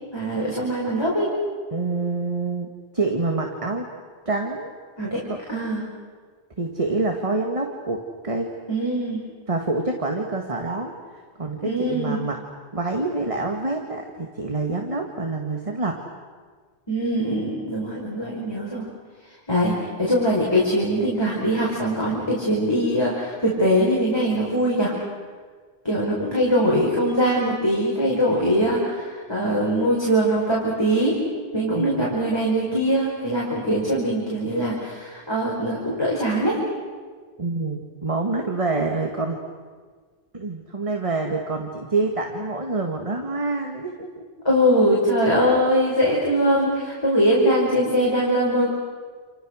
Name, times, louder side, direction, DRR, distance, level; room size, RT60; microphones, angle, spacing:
voice 1, 0.1-1.3 5.0-5.2 5.5-5.8 8.7-9.2 11.6-12.2 16.9-18.9 19.5-24.9 25.8-31.2 31.5-36.6 44.4-48.7, equal, 20° left, -5 dB, 5.1 m, -22 dB
voice 2, 1.7-3.9 4.3-4.7 5.3-5.4 6.6-8.6 9.5-12.4 12.7-16.0 31.7-32.1 37.4-39.4 40.3-44.2, right 3 dB, 30° right, 2 dB, 2.0 m, -27 dB
29.5 x 29.0 x 6.5 m, 1.5 s
omnidirectional pair, 1.1 m